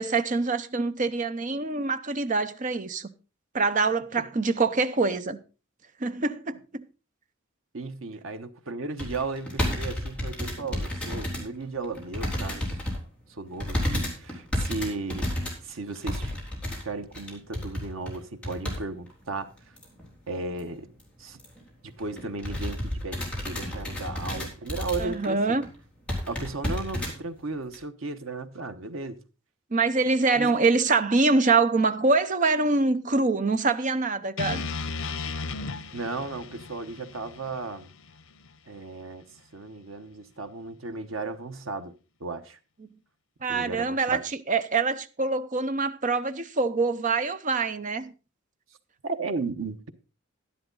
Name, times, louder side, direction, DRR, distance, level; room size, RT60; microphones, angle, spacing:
voice 1, 0.0-3.1 3.5-5.4 6.0-6.9 25.0-25.7 29.7-34.6 43.4-48.1, right 3 dB, 40° right, 0.7 m, -25 dB
voice 2, 7.7-12.8 13.3-15.3 15.6-16.4 16.8-19.5 20.3-20.9 21.2-21.4 21.8-25.6 26.3-29.2 30.4-30.5 35.9-37.9 38.7-39.2 39.5-41.9 42.2-42.6 43.5-44.2 49.0-49.9, right 3 dB, 85° right, 1.1 m, -35 dB
sound 1, 9.0-11.5 11.8-13.0 13.6-18.8 19.1-19.2 19.8-20.1 20.5-20.6 20.8-21.0 21.4-21.6 22.0-25.3 25.6-25.7 26.1-27.1 27.7-27.8, left 1 dB, 5° left, 3.6 m, -31 dB
sound 2, 34.4-38.5, left 4 dB, 85° left, 0.8 m, -35 dB
11.5 x 10.5 x 3.9 m
head